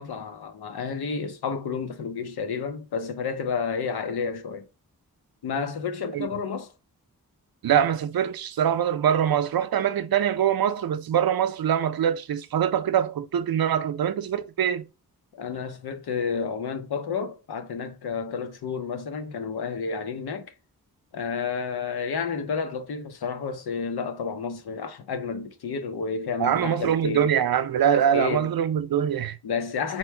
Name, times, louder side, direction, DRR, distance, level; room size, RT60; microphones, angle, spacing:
voice 1, 0.0-4.7 5.4-6.7 15.3-20.5 21.1-27.3 27.9-28.5 29.4-30.0, left 5 dB, 75° left, 0.8 m, -31 dB
voice 2, 7.6-14.9 26.4-29.4, right 9 dB, 65° right, 0.6 m, -23 dB
4.4 x 2.2 x 4.5 m
cardioid pair, 55°, 38 cm